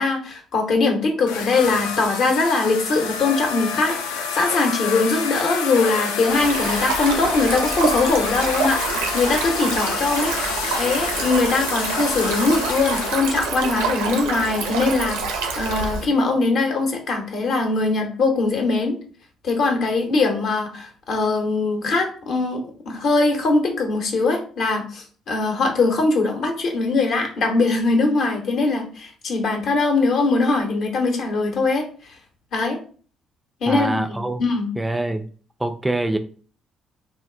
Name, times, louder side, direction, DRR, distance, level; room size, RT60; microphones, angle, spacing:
voice 1, 0.0-3.9 4.3-10.3 10.8-15.2 15.6-18.9 19.4-31.8 32.5-32.8 33.6-34.7, left 3 dB, 55° left, 3 dB, 0.7 m, -21 dB
sound 1, 1.3-13.2, left 6 dB, 75° left, 0.3 m, -28 dB
Stream, 6.2-16.0, right 4 dB, 75° right, 0.5 m, -27 dB
voice 2, 33.7-34.4 34.8-35.2 35.6-36.2, right 1 dB, 10° right, 7 dB, 0.3 m, -24 dB
3.4 x 2.3 x 2.4 m, 0.41 s
figure-of-eight pair, 45°, 0 cm